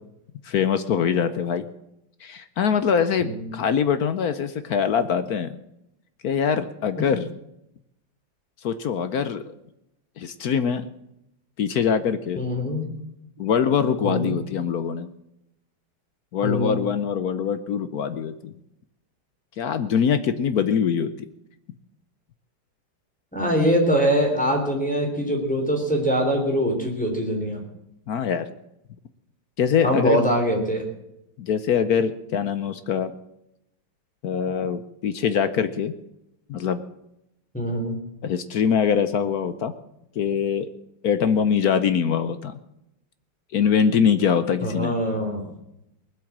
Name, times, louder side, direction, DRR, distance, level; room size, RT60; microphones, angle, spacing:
voice 1, 0.4-1.7 2.2-5.6 6.2-7.3 8.6-9.5 10.2-10.9 11.6-12.4 13.4-15.1 16.3-18.5 19.6-21.1 28.1-28.5 29.6-30.2 31.4-33.1 34.2-35.9 36.5-36.8 38.2-39.7 40.2-40.7 41.0-42.6 43.5-45.0, left 7 dB, 60° left, 11 dB, 1.1 m, -23 dB
voice 2, 12.4-12.9 14.0-14.4 16.4-16.8 23.3-27.6 29.8-30.8 37.5-38.0 44.6-45.5, equal, 5° left, 0 dB, 3.4 m, -23 dB
20.0 x 8.1 x 7.4 m, 0.84 s
omnidirectional pair, 2.2 m